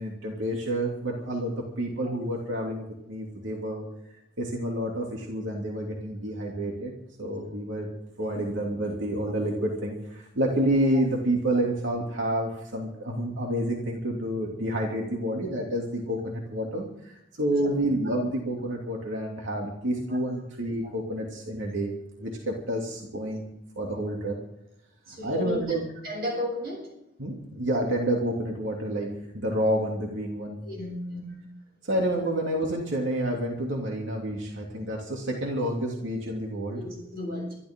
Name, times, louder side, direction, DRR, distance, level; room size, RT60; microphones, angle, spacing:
voice 1, 0.0-3.8 4.4-6.9 7.2-7.9 8.2-21.9 22.2-23.5 23.8-24.4 25.2-25.8 27.2-30.6 31.8-36.8, right 1 dB, 85° right, -1 dB, 2.8 m, -29 dB
voice 2, 25.1-25.6 26.0-26.9 29.4-29.5 30.6-31.5 36.8-37.6, left 1 dB, 55° right, 0 dB, 7.9 m, -34 dB
24.5 x 13.0 x 3.8 m, 0.81 s
head